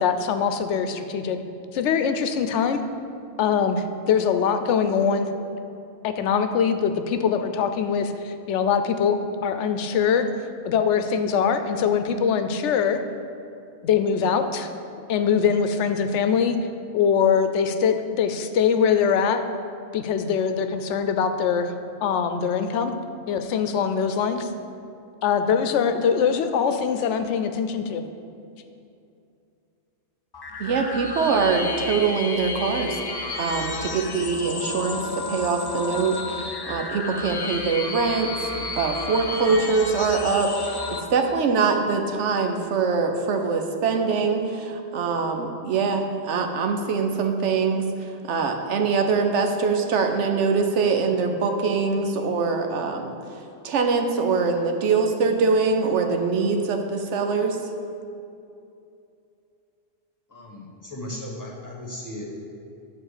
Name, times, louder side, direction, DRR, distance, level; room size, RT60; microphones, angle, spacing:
voice 1, 0.0-1.4 1.7-2.8 3.4-5.3 6.0-10.3 10.6-13.0 13.8-14.7 15.1-16.6 16.9-19.5 19.9-21.7 22.0-22.9 23.3-24.5 25.2-28.0, left 7 dB, 85° left, 8 dB, 0.9 m, -22 dB
sound 1, 30.3-41.0, left 3 dB, 30° left, 0.4 m, -32 dB
voice 2, 30.6-33.0 33.4-53.1 53.6-57.6, right 4 dB, 85° right, 5 dB, 1.1 m, -23 dB
voice 3, 60.3-62.3, left 1 dB, 15° left, -3 dB, 1.4 m, -36 dB
8.7 x 4.1 x 6.6 m, 2.6 s
omnidirectional pair, 1.2 m